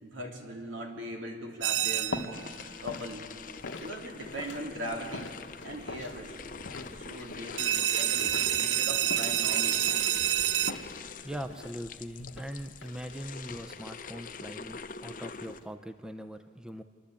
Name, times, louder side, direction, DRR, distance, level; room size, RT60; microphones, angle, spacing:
voice 1, 0.0-2.5 2.8-3.3 3.8-5.3 5.6-6.4 6.9-9.9, right 1 dB, 90° right, 1 dB, 3.3 m, -40 dB
sound 1, 1.6-2.4 7.6-10.7, right 11 dB, 70° right, 0.6 m, -28 dB
sound 2, 1.7-15.7, left 2 dB, 85° left, 1.2 m, -45 dB
sound 3, 2.3-15.6, left 5 dB, 45° left, 0.7 m, -44 dB
voice 2, 11.2-16.8, equal, 5° right, 8 dB, 0.5 m, -41 dB
27.5 x 11.5 x 8.4 m, 2.2 s
head